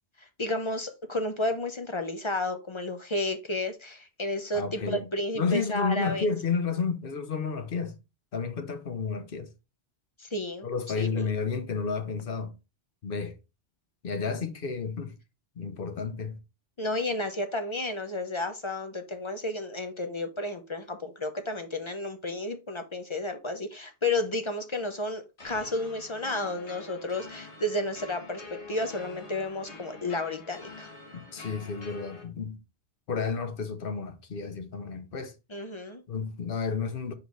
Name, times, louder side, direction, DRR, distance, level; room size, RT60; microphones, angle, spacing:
voice 1, 0.2-6.3 10.2-10.7 11.0-11.3 16.8-30.9 35.5-36.0, left 2 dB, 30° left, 0.8 m, -32 dB
voice 2, 4.5-5.1 5.3-8.0 8.3-9.5 10.6-12.5 13.0-13.4 14.0-15.2 15.6-16.4 31.1-32.6 33.1-35.3 36.1-37.1, left 5 dB, 60° left, 0.9 m, -31 dB
sound 1, 25.4-32.2, left 3 dB, 80° left, 2.0 m, -46 dB
5.1 x 4.9 x 3.8 m
omnidirectional pair, 1.1 m